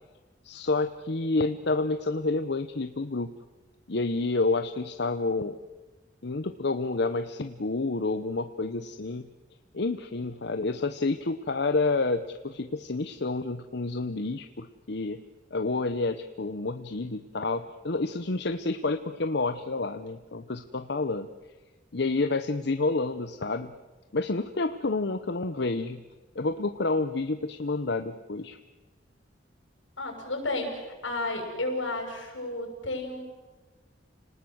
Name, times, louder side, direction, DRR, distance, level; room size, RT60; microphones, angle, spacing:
voice 1, 0.4-3.3 3.9-5.6 6.2-9.3 9.7-15.2 15.5-21.3 21.9-23.7 24.1-26.0 26.3-28.6, left 3 dB, 60° left, 9 dB, 0.9 m, -29 dB
voice 2, 30.0-33.2, left 2 dB, 85° left, 3 dB, 6.9 m, -32 dB
29.5 x 19.5 x 8.0 m, 1.3 s
head